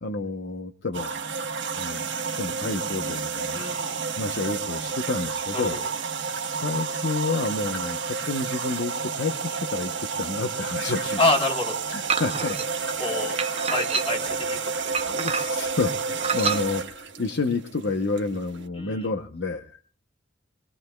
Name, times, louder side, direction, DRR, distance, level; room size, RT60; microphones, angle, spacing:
voice 1, 0.0-1.1 1.7-2.0 2.3-3.7 4.2-5.8 6.5-11.2 11.9-12.6 15.0-19.8, left 3 dB, 60° left, 8 dB, 0.8 m, -29 dB
sound 1, 0.9-18.7, right 5 dB, 65° right, 1.4 m, -30 dB
voice 2, 3.5-4.0 5.5-5.7 11.2-11.7 13.0-13.4 13.7-14.9 18.8-19.1, left 2 dB, 30° left, 1 dB, 3.5 m, -27 dB
sound 2, 12.1-12.7 13.4-14.3 14.9-15.7 16.2-16.6, right 5 dB, 30° right, 1.3 m, -28 dB
25.0 x 21.5 x 2.2 m, 0.41 s
head